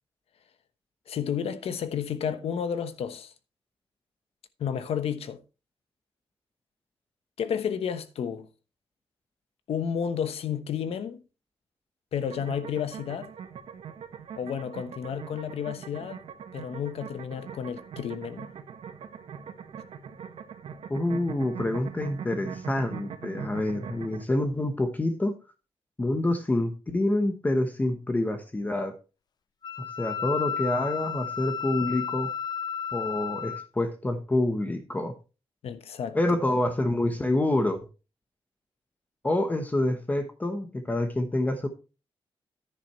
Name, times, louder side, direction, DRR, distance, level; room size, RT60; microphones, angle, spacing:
voice 1, 1.1-3.3 4.6-5.4 7.4-8.5 9.7-11.2 12.1-13.3 14.4-16.2 16.5-18.5 35.6-36.4, left 8 dB, 85° left, 1.1 m, -31 dB
sound 1, 12.2-24.2, right 7 dB, 80° right, 1.4 m, -41 dB
voice 2, 20.9-25.3 26.0-28.9 30.0-32.3 32.9-35.1 36.1-37.8 39.2-41.7, left 1 dB, 15° left, 1.0 m, -27 dB
Wind instrument woodwind instrument, 29.6-33.7, left 7 dB, 45° left, 0.5 m, -33 dB
10.5 x 10.0 x 3.1 m
wide cardioid pair, 175°, 10 cm